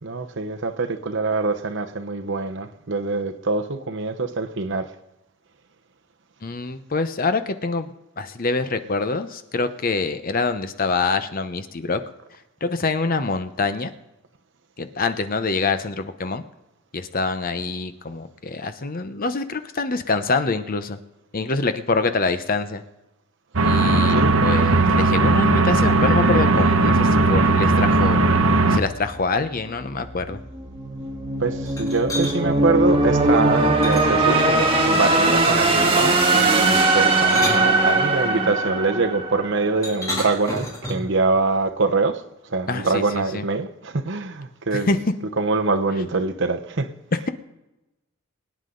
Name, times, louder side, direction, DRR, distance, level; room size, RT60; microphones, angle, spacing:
voice 1, 0.0-4.9 24.1-24.5 31.4-42.2 42.5-45.0 45.4-46.9, right 3 dB, 60° right, 1.0 m, -24 dB
voice 2, 6.4-12.0 12.6-13.9 14.8-16.4 16.9-21.0 21.3-22.8 23.6-28.3 28.7-30.4 42.7-43.4 44.7-45.0, left 3 dB, 45° left, 0.8 m, -25 dB
sound 1, 23.5-28.8, right 2 dB, 85° right, 1.0 m, -17 dB
sound 2, 28.9-39.9, right 2 dB, 25° right, 1.7 m, -20 dB
sound 3, 31.6-32.4 33.8-34.7 35.4-35.8 37.0-38.3 39.8-41.2, left 1 dB, 15° left, 3.3 m, -31 dB
23.0 x 9.7 x 3.9 m
head